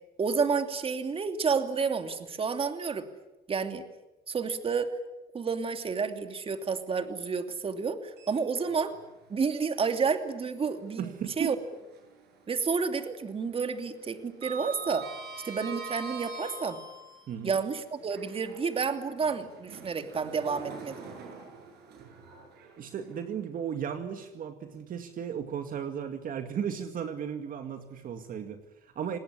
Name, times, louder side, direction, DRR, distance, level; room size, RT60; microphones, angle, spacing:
voice 1, 0.2-3.1 3.5-3.8 4.3-4.9 5.3-8.9 9.3-11.6 12.5-15.1 15.4-16.8 17.4-21.1, right 5 dB, 35° right, 7 dB, 2.8 m, -30 dB
Sliding door, 8.1-9.1 9.4-9.6 11.3-12.3 12.6-13.0 13.2-17.3 18.0-23.2, right 3 dB, 75° right, 7.7 m, -44 dB
voice 2, 11.0-11.6 17.3-17.5 22.8-29.2, right 8 dB, 55° right, 7 dB, 2.2 m, -35 dB
28.0 x 19.5 x 9.8 m, 1.0 s
cardioid pair, 110°, 17 cm